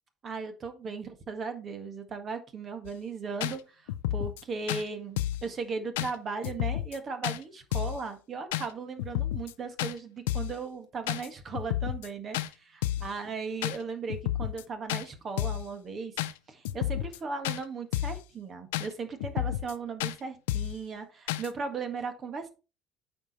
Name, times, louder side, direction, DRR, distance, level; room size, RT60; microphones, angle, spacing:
voice 1, 0.2-22.5, right 4 dB, 45° right, 7 dB, 1.7 m, -37 dB
sound 1, 2.8-2.9 3.4-3.5 3.9-4.4 4.7-4.8 5.2-5.5 6.0-6.1 6.4-7.0 7.2-7.4 7.7-8.0 8.5-8.7 9.0-9.5 9.8-9.9 10.3-10.6 11.1-11.3 11.5-12.1 12.3-12.5 12.8-13.1 13.6-13.8 14.1-14.6 14.9-15.0 15.4-15.7 16.2-16.3 16.6-17.2 17.4-17.6 17.9-18.2 18.7-18.9 19.2-19.7 20.0-20.1 20.5-20.8 21.3-21.5, left 14 dB, 85° left, 0.4 m, -31 dB
8.7 x 4.9 x 4.2 m, 0.32 s
hypercardioid pair, 70°, 0 cm